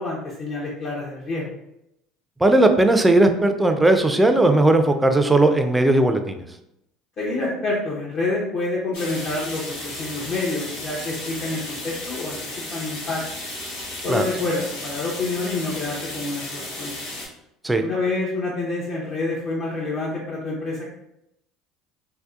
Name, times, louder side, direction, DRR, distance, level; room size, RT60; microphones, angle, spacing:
voice 1, 0.0-1.6 7.2-12.4 12.7-13.2 14.0-16.9 17.7-20.9, left 2 dB, 50° left, -5 dB, 0.6 m, -27 dB
voice 2, 2.4-6.4 14.1-14.2 17.6-17.8, right 2 dB, 10° right, 6 dB, 0.3 m, -17 dB
sound 1, 8.9-17.3, left 2 dB, 80° left, 0.8 m, -34 dB
2.6 x 2.1 x 2.3 m, 0.82 s
hypercardioid pair, 75°, 0 cm